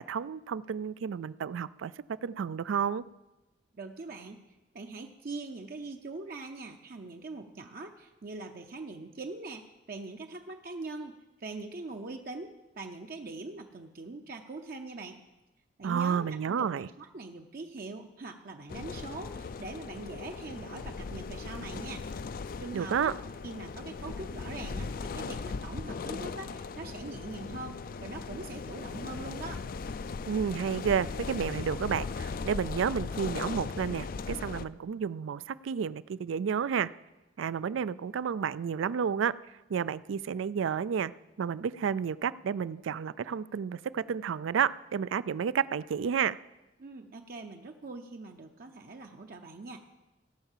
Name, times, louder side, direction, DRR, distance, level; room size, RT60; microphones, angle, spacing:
voice 1, 0.0-1.9 2.2-3.0 15.8-16.9 22.7-23.1 30.3-36.9 37.4-39.3 39.7-41.1 41.4-46.4, right 7 dB, 85° right, 18 dB, 0.4 m, -31 dB
voice 2, 3.7-4.4 4.7-15.2 15.8-22.1 22.6-23.2 23.4-29.6 46.8-49.8, right 3 dB, 50° right, 4 dB, 0.6 m, -42 dB
sound 1, 18.7-34.7, left 4 dB, 50° left, 0.4 m, -38 dB
17.0 x 5.7 x 7.3 m, 1.0 s
head